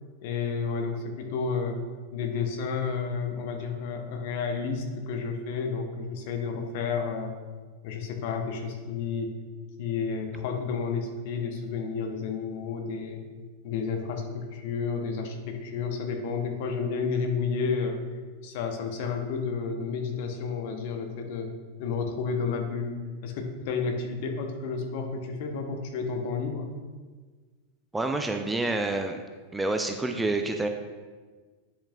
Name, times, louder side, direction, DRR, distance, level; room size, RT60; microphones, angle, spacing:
voice 1, 0.2-1.8 2.1-7.3 7.8-9.3 9.8-13.3 13.6-18.0 18.4-21.5 21.8-23.0 23.2-26.7, left 5 dB, 50° left, 4 dB, 0.9 m, -31 dB
voice 2, 27.9-29.2 29.5-30.7, right 2 dB, 10° right, 5 dB, 0.4 m, -28 dB
10.0 x 5.1 x 2.5 m, 1.4 s
figure-of-eight pair, 90°, 0 cm